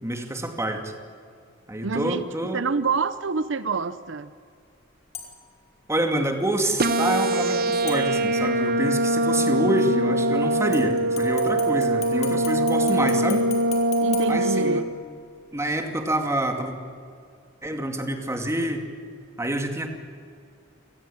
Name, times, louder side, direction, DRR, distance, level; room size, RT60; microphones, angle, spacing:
voice 1, 0.0-0.9 1.7-2.6 5.9-13.4 14.3-14.8 15.5-16.8 17.6-18.8 19.4-19.9, right 1 dB, 15° right, 5 dB, 2.5 m, -27 dB
voice 2, 1.8-2.2 2.5-4.3 14.0-14.9, right 4 dB, 65° right, 13 dB, 0.7 m, -27 dB
sound 1, 5.1-5.6 7.9-8.6 10.7-15.1 15.5-15.6, left 7 dB, 35° left, 4.5 m, -40 dB
sound 2, 6.8-14.8, right 1 dB, 50° right, 1.3 m, -23 dB
28.0 x 18.5 x 8.9 m, 2.3 s
head